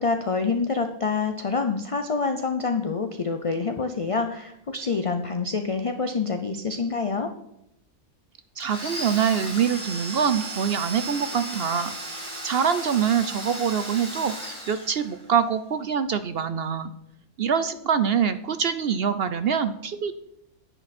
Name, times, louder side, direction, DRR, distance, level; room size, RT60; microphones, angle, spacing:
voice 1, 0.0-7.3, left 4 dB, 40° left, 7 dB, 0.5 m, -26 dB
Domestic sounds home sounds, 8.6-15.4, right 1 dB, 5° left, 3.0 m, -35 dB
voice 2, 8.6-11.9 12.4-16.9 17.4-20.1, right 7 dB, 60° right, 11 dB, 0.7 m, -24 dB
10.5 x 10.0 x 4.2 m, 0.79 s
omnidirectional pair, 1.5 m